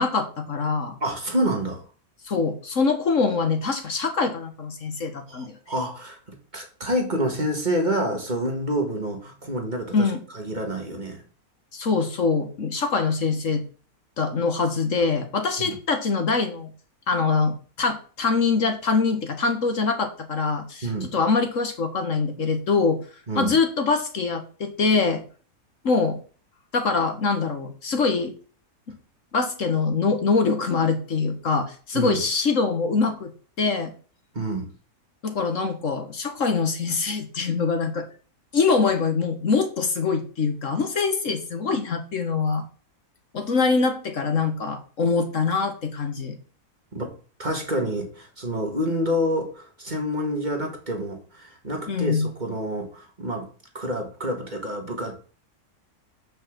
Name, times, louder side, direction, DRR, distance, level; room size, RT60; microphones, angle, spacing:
voice 1, 0.0-1.0 2.2-5.6 9.9-10.2 11.7-13.6 14.2-16.7 17.1-23.0 23.3-25.2 25.8-26.2 26.7-28.3 28.9-29.0 29.3-33.3 33.6-33.9 35.2-38.1 38.5-42.6 43.3-46.3 51.9-52.3, left 4 dB, 60° left, 6 dB, 1.7 m, -24 dB
voice 2, 1.0-1.8 5.3-11.2 15.6-15.8 20.8-21.1 23.3-23.5 31.9-32.2 34.3-34.7 46.9-47.1 47.4-53.5 53.7-55.1, equal, 30° right, 2 dB, 1.9 m, -28 dB
6.5 x 5.8 x 7.3 m, 0.39 s
omnidirectional pair, 1.5 m